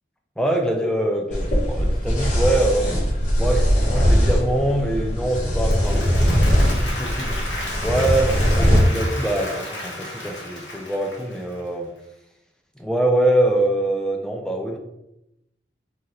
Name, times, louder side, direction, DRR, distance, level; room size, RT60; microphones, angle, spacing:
voice 1, 0.4-2.9 3.4-7.6 7.8-11.9 12.8-14.8, right 1 dB, 5° left, 2 dB, 0.3 m, -24 dB
sound 1, 1.3-8.8, equal, 40° left, 1.3 m, -20 dB
Applause, 5.4-11.7, left 1 dB, 80° left, 1.1 m, -33 dB
3.1 x 2.7 x 3.7 m, 0.86 s
head